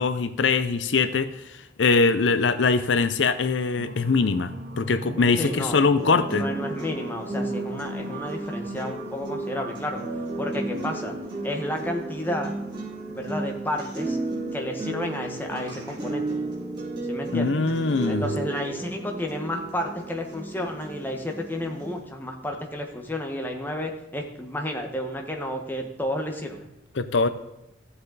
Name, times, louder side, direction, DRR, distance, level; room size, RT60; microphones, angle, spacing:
voice 1, 0.0-6.4 17.3-18.3 27.0-27.3, left 4 dB, 80° left, 12 dB, 0.6 m, -22 dB
sound 1, 3.8-15.6, left 1 dB, 65° right, 1.6 m, -41 dB
voice 2, 5.4-6.0 6.3-10.0 10.4-11.2 11.4-12.6 13.1-14.2 14.5-16.2 17.1-17.6 18.1-26.6, left 1 dB, 10° left, 2 dB, 1.3 m, -31 dB
sound 2, 6.0-22.0, right 2 dB, 25° right, 3.4 m, -33 dB
14.5 x 7.9 x 4.0 m, 0.93 s
head